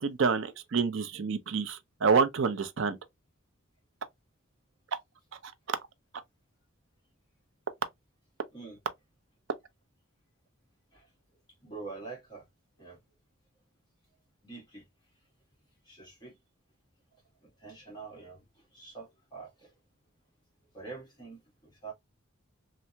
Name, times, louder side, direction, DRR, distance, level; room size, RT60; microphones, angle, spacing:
voice 1, 0.0-3.0, right 5 dB, 60° right, 0.5 m, -27 dB
voice 2, 11.6-12.4 12.8-13.0 14.4-14.8 15.9-16.4 17.4-18.4 18.7-19.7 20.7-21.9, right 4 dB, 20° left, 1.2 m, -45 dB
3.3 x 2.0 x 2.7 m
head